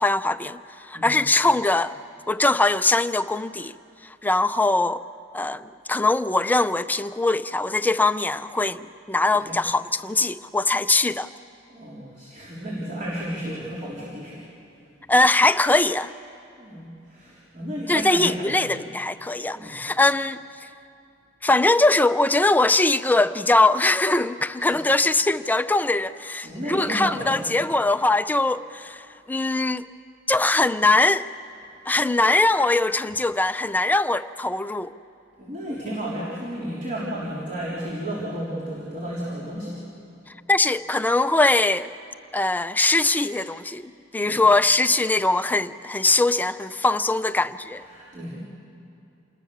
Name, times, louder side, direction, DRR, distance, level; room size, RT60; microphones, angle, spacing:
voice 1, 0.0-2.0 2.3-3.7 4.0-5.0 5.3-11.3 15.1-16.1 17.9-20.4 21.4-29.9 30.3-31.3 31.9-34.9 40.5-41.9 42.3-47.8, left 2 dB, 10° left, 0.5 m, -21 dB
voice 2, 11.7-14.4 16.6-18.7 19.5-19.9 26.4-27.6 35.4-39.8 44.2-44.4 47.9-48.4, right 1 dB, 45° right, 3.7 m, -33 dB
28.0 x 20.5 x 6.7 m
head